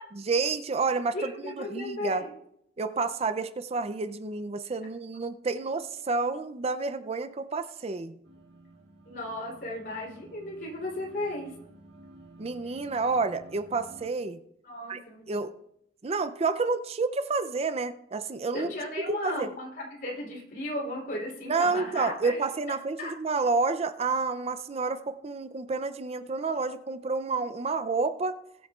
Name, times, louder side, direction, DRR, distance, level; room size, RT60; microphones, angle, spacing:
voice 1, 0.3-2.2 2.8-8.2 12.4-14.4 14.9-15.0 15.3-15.5 16.0-18.7 19.1-19.5 21.5-28.4, right 4 dB, 35° right, 11 dB, 0.5 m, -29 dB
voice 2, 1.1-2.3 9.1-11.5 14.6-15.4 18.5-22.4 23.0-23.1, left 1 dB, 55° left, -2 dB, 3.5 m, -35 dB
sound 1, 8.2-14.1, right 2 dB, 90° right, 1.9 m, -52 dB
21.0 x 8.6 x 2.4 m, 0.77 s
head